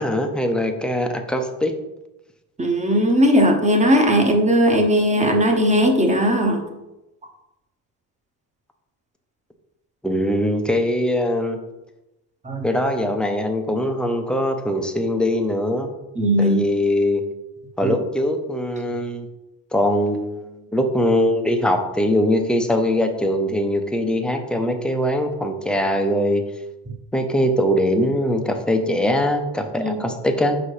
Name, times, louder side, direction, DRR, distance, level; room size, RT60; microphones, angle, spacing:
voice 1, 0.0-1.7 10.0-11.6 12.6-16.0 16.4-17.3 17.8-19.3 19.7-26.4 27.1-30.6, left 1 dB, ahead, 5 dB, 0.5 m, -21 dB
voice 2, 2.6-6.6 12.4-12.7 16.2-16.6 17.8-17.9 29.8-30.0, equal, 15° right, 4 dB, 0.9 m, -18 dB
5.5 x 4.2 x 4.8 m, 0.97 s
cardioid pair, 130°, 43 cm